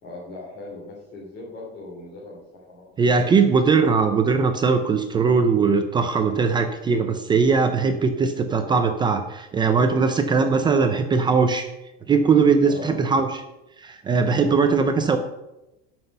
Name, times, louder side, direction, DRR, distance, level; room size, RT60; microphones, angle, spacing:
voice 1, 0.0-3.3 12.6-13.0 14.4-14.9, left 2 dB, 35° left, -6 dB, 3.2 m, -39 dB
voice 2, 3.0-11.7 12.1-13.4 13.8-15.2, right 5 dB, 15° right, 6 dB, 0.5 m, -20 dB
13.0 x 6.1 x 5.5 m, 0.95 s
cardioid pair, 170°, 31 cm